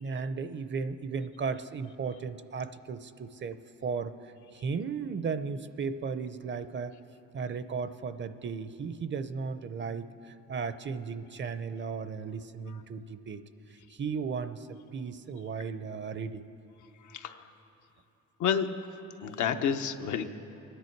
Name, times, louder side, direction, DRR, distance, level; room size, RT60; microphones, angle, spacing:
voice 1, 0.0-6.9 7.3-13.4 13.7-16.4, right 5 dB, 40° right, 12 dB, 0.6 m, -35 dB
voice 2, 17.0-17.5 18.4-18.7 19.2-20.3, left 8 dB, 75° left, 7 dB, 0.8 m, -29 dB
23.5 x 10.0 x 4.6 m, 2.9 s
cardioid pair, 90°, 30 cm